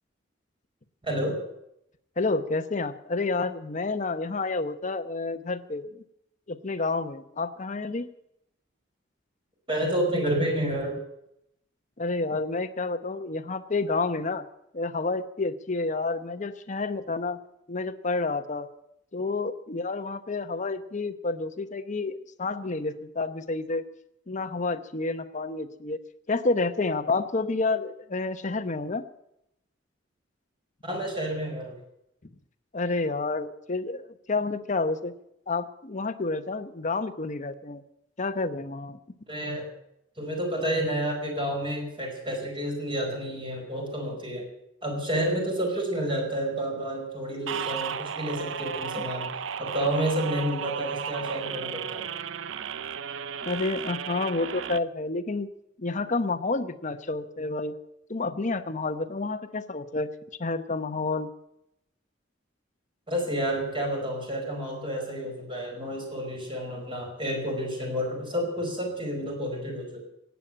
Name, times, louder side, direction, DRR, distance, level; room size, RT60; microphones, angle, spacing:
voice 1, 1.0-1.4 9.7-11.0 30.8-31.8 39.3-39.7 40.2-44.4 44.8-49.3 49.6-52.1 63.1-70.0, right 1 dB, 25° right, 1 dB, 4.9 m, -30 dB
voice 2, 2.2-5.9 6.5-8.1 12.0-14.4 14.7-17.4 17.7-18.7 19.1-23.8 24.3-26.0 26.3-29.0 32.7-35.1 35.5-37.8 38.2-39.0 53.4-55.5 55.8-57.7 58.1-60.1 60.4-61.3, left 3 dB, 40° left, 10 dB, 0.9 m, -29 dB
sound 1, 47.5-54.8, right 7 dB, 80° right, 0.6 m, -34 dB
17.5 x 8.4 x 8.6 m, 0.80 s
head